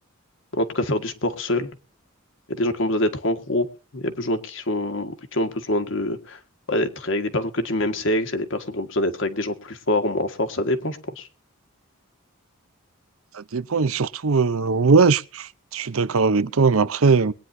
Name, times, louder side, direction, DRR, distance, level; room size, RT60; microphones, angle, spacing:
voice 1, 0.5-1.7 2.5-3.7 3.9-6.4 6.7-11.3, left 1 dB, 60° left, 1.6 m, -25 dB
voice 2, 13.3-17.3, right 4 dB, 75° right, 0.7 m, -20 dB
22.0 x 9.6 x 2.7 m
head